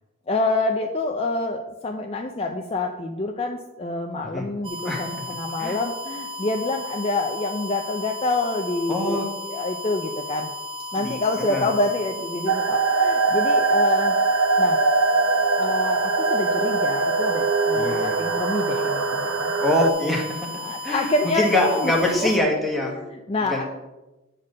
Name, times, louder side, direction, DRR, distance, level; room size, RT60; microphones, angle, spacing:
voice 1, 0.3-10.5 10.9-14.2 14.6-14.8 15.5-19.5 20.6-22.5 22.9-23.6, left 2 dB, 30° left, 3 dB, 0.5 m, -27 dB
sound 1, 4.6-22.4, left 2 dB, 25° right, 0.6 m, -35 dB
voice 2, 8.9-9.3 10.9-11.2 11.5-11.7 17.7-18.2 19.6-20.5 20.8-22.9 23.4-23.6, left 1 dB, ahead, -2 dB, 1.5 m, -24 dB
sound 2, 12.5-19.9, right 3 dB, 75° right, 0.7 m, -22 dB
8.9 x 4.2 x 6.3 m, 1.1 s
head